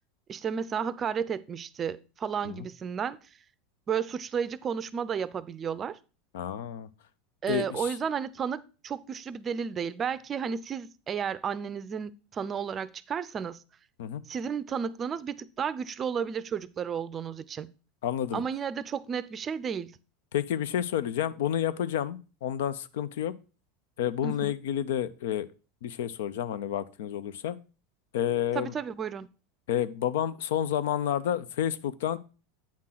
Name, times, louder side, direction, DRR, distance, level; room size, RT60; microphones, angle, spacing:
voice 1, 0.3-3.2 3.9-6.0 7.4-13.6 14.3-17.7 18.3-20.0 24.2-24.5 28.5-29.3, right 7 dB, 30° right, 0.5 m, -32 dB
voice 2, 6.3-6.9 7.5-7.9 14.0-14.2 18.0-18.4 20.3-23.3 24.0-25.5 25.8-27.6 28.1-28.7 29.7-32.2, left 10 dB, 80° left, 0.5 m, -30 dB
8.6 x 3.8 x 5.7 m
supercardioid pair, 110°, 0 cm